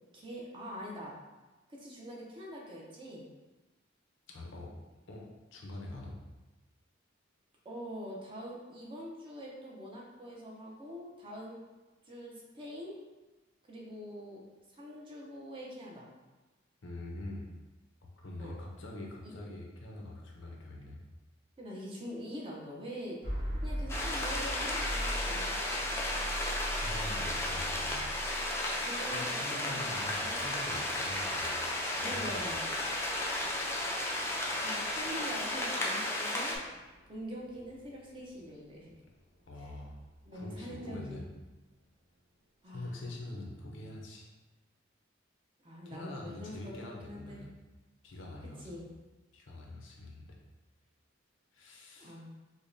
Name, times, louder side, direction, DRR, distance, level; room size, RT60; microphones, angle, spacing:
voice 1, 0.1-1.2 1.7-3.3 7.6-11.6 12.1-13.0 13.7-14.4 14.7-16.1 18.4-18.6 19.2-19.3 21.6-23.2 23.6-25.6 28.8-30.4 32.0-32.6 34.6-36.6 37.1-38.9 40.2-41.2 42.6-43.1 45.6-47.5 48.6-48.9 52.0-52.3, equal, 25° right, -3 dB, 0.6 m, -44 dB
voice 2, 4.3-4.7 5.1-5.2 5.5-6.2 16.8-17.4 18.2-21.0 26.0-26.2 26.8-28.0 29.1-31.6 31.9-32.4 39.5-39.9 40.3-41.2 42.7-44.3 45.8-47.6 48.0-48.8 49.3-50.4 51.5-52.2, left 1 dB, 70° left, -1 dB, 0.6 m, -44 dB
sound 1, 23.2-39.2, equal, 45° right, 1.2 m, -42 dB
sound 2, 23.9-36.6, left 1 dB, 15° left, 0.4 m, -34 dB
5.0 x 2.2 x 2.6 m, 1.2 s
head